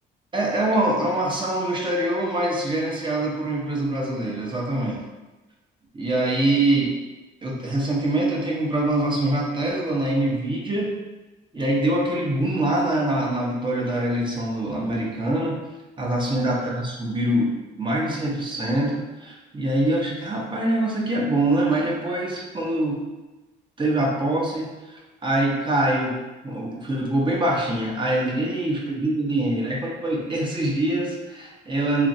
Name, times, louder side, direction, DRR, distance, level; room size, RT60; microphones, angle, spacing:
voice 1, 0.3-5.0 5.9-7.0 7.4-10.9 11.5-15.6 16.0-23.0 23.8-26.1 26.4-32.1, right 1 dB, 25° right, -2 dB, 0.7 m, -24 dB
3.0 x 2.5 x 2.6 m, 1.1 s
cardioid pair, 90°, 20 cm